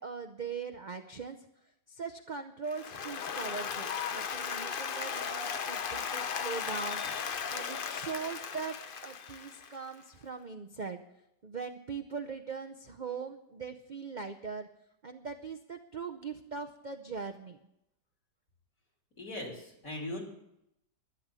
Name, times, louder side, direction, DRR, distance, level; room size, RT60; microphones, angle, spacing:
voice 1, 0.0-1.4 1.9-7.0 7.5-8.8 9.0-11.0 11.4-14.7 15.0-17.6, right 5 dB, 65° right, 7 dB, 0.4 m, -40 dB
Applause, 2.7-9.9, left 6 dB, 65° left, 0.5 m, -36 dB
voice 2, 19.2-20.2, left 1 dB, 50° left, 0 dB, 3.7 m, -39 dB
12.0 x 11.0 x 7.5 m, 0.82 s
omnidirectional pair, 1.9 m